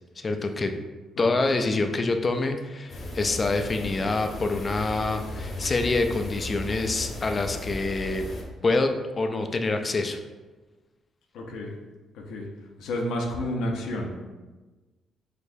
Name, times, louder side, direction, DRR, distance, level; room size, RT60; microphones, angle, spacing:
voice 1, 0.2-0.7 1.2-8.2 8.6-8.9 9.2-10.2, left 3 dB, 35° left, 6 dB, 0.4 m, -26 dB
sound 1, 2.9-8.4, left 1 dB, 50° left, 0.9 m, -36 dB
voice 2, 11.3-11.7 12.1-12.5 12.8-14.1, left 1 dB, 80° left, 0 dB, 0.7 m, -31 dB
4.9 x 3.3 x 2.6 m, 1.2 s
cardioid pair, 90°, 0 cm